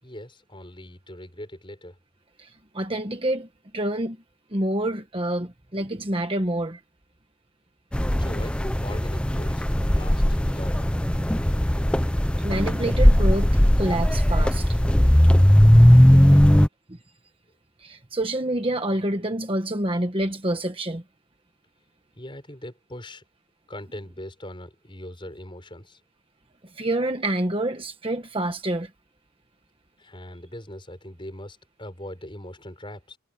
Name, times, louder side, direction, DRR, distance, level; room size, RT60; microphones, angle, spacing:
voice 1, 0.0-2.0 8.2-10.9 16.1-16.6 22.1-23.2 23.7-26.0 30.0-33.2, left 1 dB, 25° left, 6.7 m, -41 dB
voice 2, 2.4-3.5 3.7-4.2 4.5-6.8 12.4-14.8 16.9-17.0 17.8-21.0 26.7-28.9, right 1 dB, 25° right, 1.3 m, -27 dB
sound 1, 7.9-16.7, equal, 5° left, 0.5 m, -18 dB
head